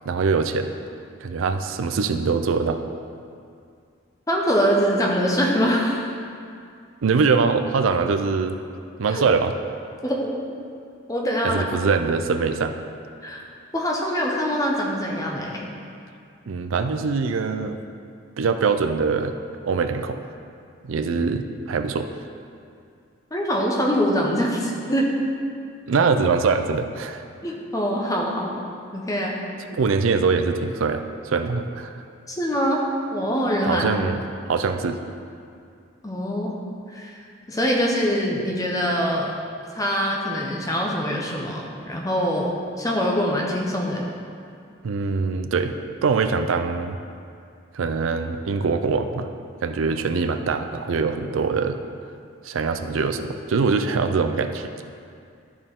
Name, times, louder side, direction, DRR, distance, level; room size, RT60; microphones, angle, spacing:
voice 1, 0.1-0.7 1.2-2.8 7.0-8.6 9.0-9.5 11.4-12.8 16.5-17.8 18.4-19.4 19.7-20.2 20.8-22.1 25.9-27.2 29.7-32.0 33.7-34.2 34.5-35.0 44.8-47.0 47.7-49.3 49.6-51.8 52.4-54.7, right 4 dB, 85° right, 7 dB, 0.4 m, -23 dB
voice 2, 4.3-6.1 9.1-9.2 10.0-10.3 11.1-11.7 13.2-13.4 13.7-15.6 23.3-25.1 27.4-28.7 28.9-29.4 32.3-32.9 33.1-33.9 36.0-36.5 36.9-37.1 37.5-39.3 39.7-42.5 42.8-44.1, equal, 15° left, -2 dB, 0.9 m, -24 dB
12.0 x 4.4 x 3.7 m, 2.4 s
head